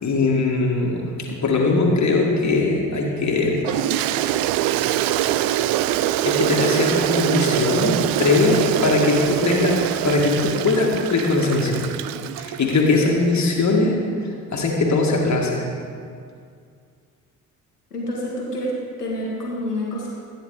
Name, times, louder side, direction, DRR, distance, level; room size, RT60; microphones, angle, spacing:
voice 1, 0.0-3.6 6.3-11.9 12.4-14.0 14.5-15.6, left 3 dB, 35° left, -1 dB, 1.8 m, -20 dB
Toilet flush, 3.6-13.0, right 13 dB, 50° right, 0.5 m, -23 dB
voice 2, 17.9-20.1, equal, 85° left, -4 dB, 1.9 m, -28 dB
14.5 x 9.7 x 3.8 m, 2.2 s
figure-of-eight pair, 45°, 45 cm